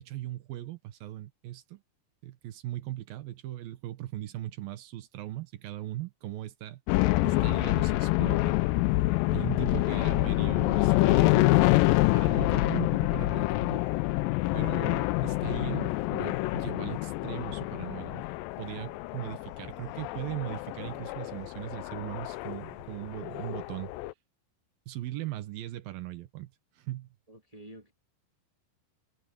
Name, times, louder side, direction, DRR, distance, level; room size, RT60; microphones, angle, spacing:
voice 1, 0.0-1.8 2.2-6.8 7.2-8.6 9.3-11.7 12.1-13.8 14.5-18.2 18.6-23.9 24.9-26.5 26.8-27.1, right 15 dB, 70° right, 2.7 m, -39 dB
sound 1, 6.9-24.1, left 19 dB, 85° left, 2.0 m, -27 dB
voice 2, 27.3-27.9, right 1 dB, 25° right, 0.8 m, -49 dB
omnidirectional pair, 4.8 m